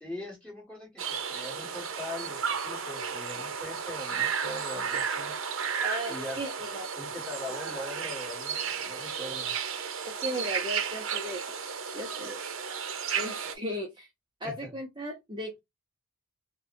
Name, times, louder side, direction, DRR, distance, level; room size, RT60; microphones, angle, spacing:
voice 1, 0.0-5.3 6.1-6.4 7.0-9.5 14.4-14.7, left 1 dB, 5° left, 1.9 m, -41 dB
sound 1, 1.0-13.5, right 7 dB, 60° right, 0.7 m, -33 dB
voice 2, 5.8-6.9 10.0-11.4 11.9-12.4 13.2-14.1 14.4-15.6, equal, 20° right, 0.7 m, -36 dB
5.1 x 2.2 x 2.6 m
head